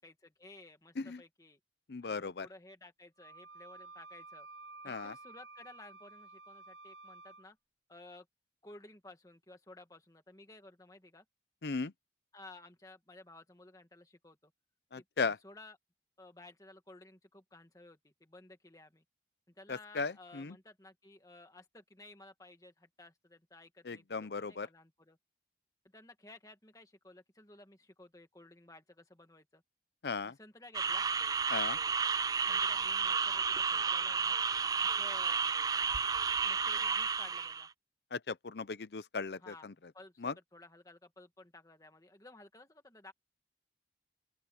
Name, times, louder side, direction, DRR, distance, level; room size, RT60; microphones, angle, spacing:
voice 1, 0.0-1.6 2.0-4.5 4.8-7.6 7.9-8.3 8.6-11.2 12.3-14.5 14.9-15.8 16.2-19.0 19.5-25.2 25.9-29.6 30.2-31.1 32.4-34.4 34.8-35.4 35.7-36.0 36.4-37.7 39.4-39.7 39.9-43.1, left 2 dB, 20° left, 2.0 m, -55 dB
voice 2, 1.9-2.5 4.8-5.1 11.6-11.9 14.9-15.4 19.7-20.6 23.8-24.7 30.0-30.4 31.5-31.8 38.1-39.7 40.2-40.3, left 4 dB, 70° left, 0.6 m, -37 dB
Wind instrument woodwind instrument, 3.2-7.5, right 3 dB, 80° right, 0.8 m, -52 dB
sound 1, 30.7-37.7, right 5 dB, 20° right, 0.4 m, -32 dB
open air
head